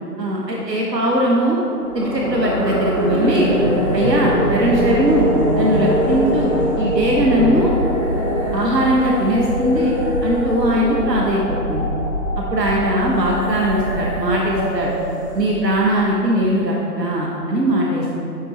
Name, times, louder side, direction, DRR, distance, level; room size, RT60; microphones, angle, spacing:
voice 1, 0.2-1.6 1.9-3.5 3.9-5.3 5.6-7.7 8.5-9.9 10.2-11.9 12.4-14.9 15.3-18.1, right 1 dB, 85° right, -3 dB, 1.4 m, -19 dB
sound 1, 1.8-15.9, equal, 20° right, 0.5 m, -22 dB
7.9 x 6.2 x 4.3 m, 2.8 s
figure-of-eight pair, 145°, 48 cm